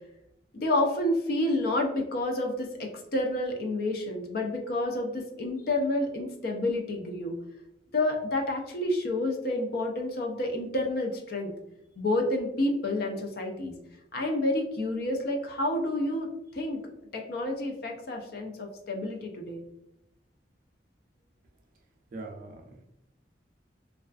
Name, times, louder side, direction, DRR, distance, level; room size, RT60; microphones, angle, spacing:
voice 1, 0.5-7.4 7.9-11.5 12.0-13.7 14.1-16.8 17.1-19.6, left 1 dB, 55° left, 2 dB, 0.4 m, -29 dB
voice 2, 22.1-22.8, right 3 dB, 50° right, 2 dB, 0.4 m, -42 dB
2.3 x 2.3 x 2.3 m, 0.83 s
head